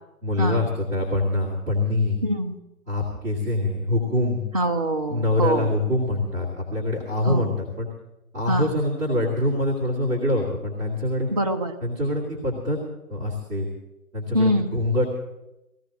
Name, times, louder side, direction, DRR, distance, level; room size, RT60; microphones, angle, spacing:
voice 1, 0.2-2.2 2.9-4.5 5.1-7.9 8.3-11.3 11.8-12.8 13.1-13.7 14.1-15.0, left 1 dB, 5° right, -9 dB, 1.5 m, -24 dB
voice 2, 2.2-2.6 4.5-5.8 7.3-7.5 8.5-8.7 11.3-11.8 14.3-14.7, right 1 dB, 25° right, 2 dB, 0.7 m, -24 dB
19.0 x 15.5 x 4.0 m, 0.95 s
figure-of-eight pair, 145°, 45 cm